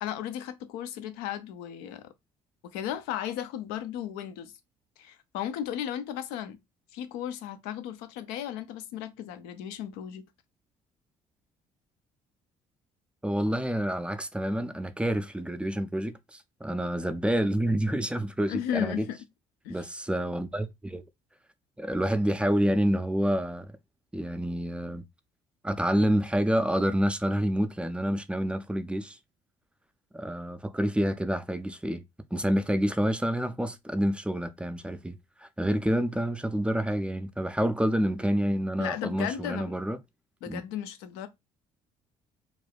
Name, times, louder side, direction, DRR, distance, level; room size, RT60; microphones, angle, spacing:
voice 1, 0.0-2.1 2.7-4.5 5.0-6.6 6.9-10.3 18.5-19.2 19.6-19.8 38.8-39.7 40.4-41.3, left 10 dB, 75° left, 0.5 m, -35 dB
voice 2, 13.2-19.1 19.7-21.0 21.8-23.7 24.1-25.0 25.6-29.2 30.1-32.0 32.3-40.0 40.5-40.6, equal, 5° right, 0.4 m, -28 dB
2.4 x 2.2 x 3.3 m
hypercardioid pair, 55°, 17 cm